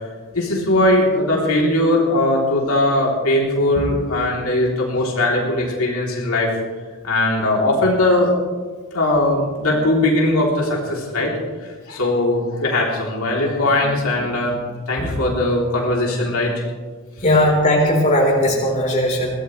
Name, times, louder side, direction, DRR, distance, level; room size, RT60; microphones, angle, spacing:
voice 1, 0.3-6.5 7.0-8.3 8.9-11.3 11.9-14.6 14.9-16.6, left 1 dB, 75° left, -3 dB, 3.4 m, -19 dB
voice 2, 17.2-19.3, left 1 dB, 35° left, -2 dB, 3.9 m, -18 dB
22.5 x 17.5 x 3.3 m, 1.5 s
head